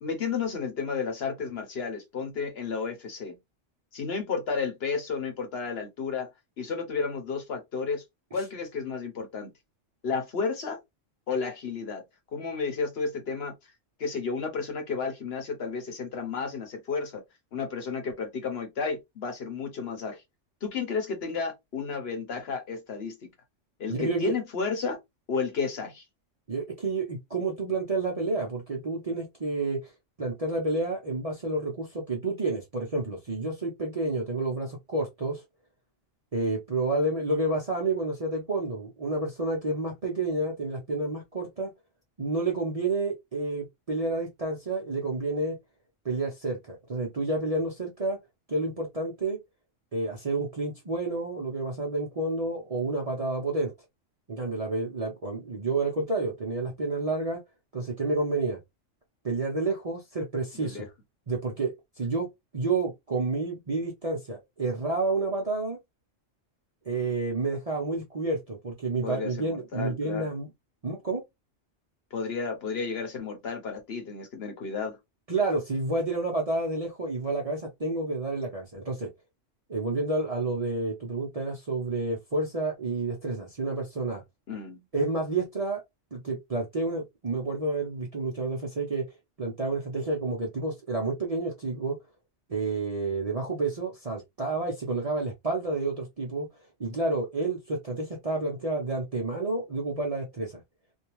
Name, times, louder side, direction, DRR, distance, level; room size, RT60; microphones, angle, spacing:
voice 1, 0.0-3.4 3.9-6.3 6.6-8.0 8.3-9.5 10.0-10.8 11.3-12.0 12.3-13.5 14.0-17.2 17.5-20.2 20.6-23.3 23.8-25.0 25.3-26.0 60.5-60.9 69.0-70.3 72.1-75.0 84.5-84.8, left 5 dB, 60° left, 0.9 m, -32 dB
voice 2, 23.9-24.4 26.5-29.9 30.2-35.4 36.3-41.7 42.2-45.6 46.0-48.2 48.5-49.4 49.9-53.7 54.3-57.4 57.7-58.6 59.2-60.9 61.3-65.8 66.9-70.5 70.8-71.2 75.3-79.1 79.7-84.2 84.9-85.8 86.1-89.1 89.4-92.0 92.5-96.5 96.8-100.6, right 2 dB, 40° right, 0.6 m, -30 dB
2.6 x 2.2 x 2.9 m
omnidirectional pair, 1.3 m